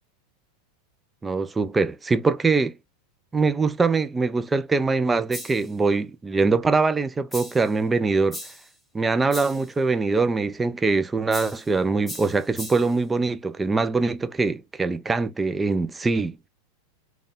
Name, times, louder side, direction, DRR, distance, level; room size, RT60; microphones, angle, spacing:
voice 1, 1.2-2.7 3.3-8.4 8.9-16.4, right 4 dB, 15° right, 0.5 m, -23 dB
sound 1, 5.3-5.7 7.3-7.7 8.3-8.7 9.3-9.7 11.3-11.7 12.1-13.0, equal, 10° left, 1.2 m, -38 dB
3.9 x 2.3 x 3.5 m
supercardioid pair, 125°, 0 cm